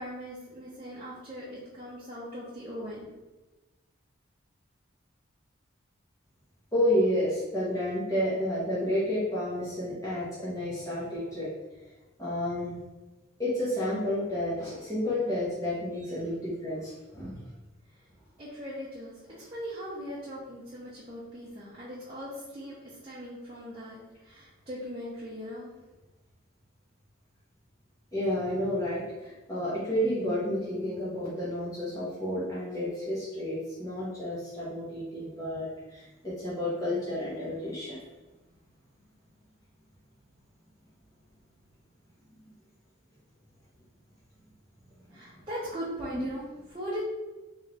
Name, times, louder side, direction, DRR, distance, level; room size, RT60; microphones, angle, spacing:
voice 1, 0.0-3.2 18.4-25.8 45.1-47.0, equal, 25° right, -9 dB, 0.8 m, -40 dB
voice 2, 6.7-11.5 12.2-12.8 13.4-17.5 28.1-38.0, left 1 dB, 15° left, -9 dB, 1.1 m, -30 dB
3.7 x 2.8 x 3.3 m, 1.1 s
head